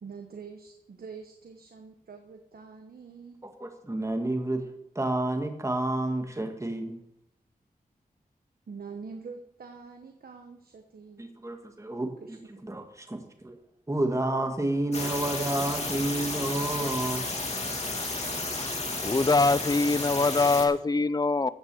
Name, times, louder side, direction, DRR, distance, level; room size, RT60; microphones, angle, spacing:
voice 1, 0.0-3.4 8.7-11.2 12.2-12.4, right 5 dB, 80° right, 4 dB, 1.1 m, -45 dB
voice 2, 3.4-4.6 4.9-7.0 11.2-13.6 13.9-17.3, right 1 dB, 20° right, 5 dB, 1.6 m, -30 dB
sound 1, 14.9-20.6, left 2 dB, 45° left, 2.4 m, -32 dB
voice 3, 19.0-21.5, left 3 dB, 25° left, 17 dB, 0.5 m, -23 dB
15.5 x 6.2 x 6.8 m, 0.81 s
wide cardioid pair, 85°, 15 cm